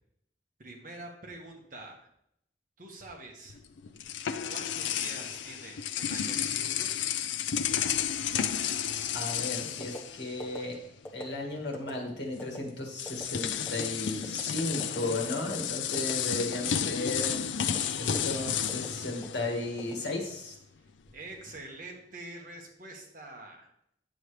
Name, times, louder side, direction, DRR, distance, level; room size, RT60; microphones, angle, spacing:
voice 1, 0.6-2.1 2.8-3.6 4.5-6.9 16.3-16.7 21.1-23.7, right 2 dB, 45° right, 1 dB, 1.4 m, -46 dB
sound 1, 3.5-10.8 11.0-11.2 12.4-12.5 12.9-20.1, left 8 dB, 80° left, 0.5 m, -32 dB
voice 2, 9.1-10.8 11.1-17.4 17.9-20.6, left 2 dB, 65° left, 1 dB, 1.9 m, -35 dB
sound 2, 9.8-10.0 10.4-10.6 11.1-11.3 11.7-11.9 12.4-12.6 13.1-13.2 13.7-13.9 14.2-14.5 14.8-15.0 15.4-15.6 15.9-16.2 16.5-16.7 17.1-17.2 17.6-17.8 18.1-18.3 18.7-18.9 19.2-19.4 19.8-20.4 20.9-21.2, left 1 dB, 10° left, 1.1 m, -42 dB
9.0 x 7.2 x 3.2 m, 0.74 s
head